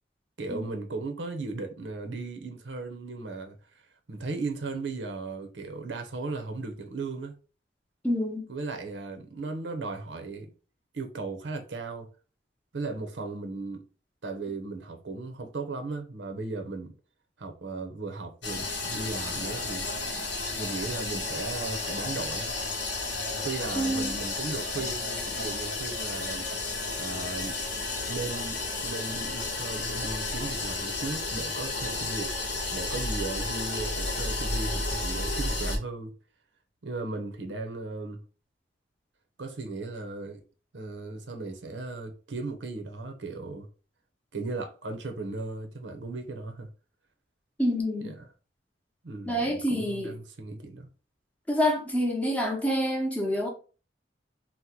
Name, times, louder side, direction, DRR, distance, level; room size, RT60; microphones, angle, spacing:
voice 1, 0.4-3.6 4.1-7.3 8.5-10.5 10.9-12.1 12.7-13.8 14.2-16.9 17.4-19.9 20.5-22.5 23.4-26.5 27.0-27.6 28.1-32.3 32.7-36.1 36.8-38.2 39.4-40.4 40.7-43.7 44.3-46.7 48.0-48.1 49.0-50.9, right 3 dB, 80° right, 0.7 m, -36 dB
voice 2, 8.0-8.5 23.8-24.1 47.6-48.1 49.3-50.1 51.5-53.5, equal, 10° left, 0.7 m, -27 dB
sound 1, 18.4-35.8, left 2 dB, 75° left, 0.9 m, -32 dB
2.9 x 2.1 x 3.5 m
head